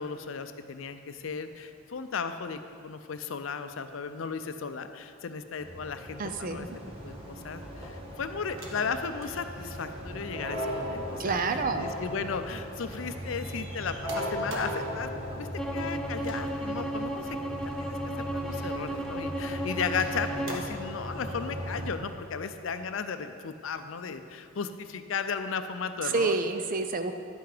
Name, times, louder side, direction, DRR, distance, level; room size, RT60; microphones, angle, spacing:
voice 1, 0.0-6.7 7.0-11.4 11.7-18.0 18.5-26.3, left 5 dB, 75° left, 9 dB, 0.5 m, -35 dB
sound 1, 5.6-21.9, equal, 30° right, 1.3 m, -38 dB
voice 2, 6.2-6.8 11.2-11.9 26.0-27.1, right 4 dB, 45° right, 8 dB, 0.5 m, -28 dB
sound 2, 8.5-12.6 12.9-14.9 16.2-17.2 17.6-17.8 18.5-19.1 19.5-20.9 22.1-22.2, right 1 dB, 80° right, 1.2 m, -48 dB
Bowed string instrument, 15.6-20.6, right 1 dB, 5° left, 0.5 m, -34 dB
10.5 x 5.8 x 5.0 m, 2.5 s
head